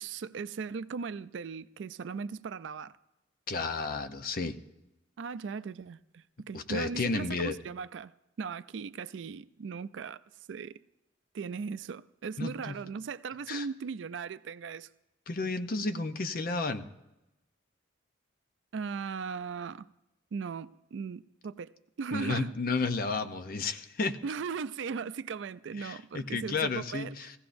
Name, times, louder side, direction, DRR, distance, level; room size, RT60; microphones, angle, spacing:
voice 1, 0.0-2.9 5.2-8.1 8.4-10.2 10.5-10.8 11.3-14.9 18.7-19.9 20.3-22.5 24.2-27.3, right 5 dB, 65° right, 0.4 m, -38 dB
voice 2, 3.5-4.6 6.5-7.6 12.4-12.7 13.5-13.7 15.3-16.9 22.1-24.2 25.8-27.3, left 3 dB, 50° left, 0.7 m, -32 dB
18.5 x 15.5 x 2.6 m
head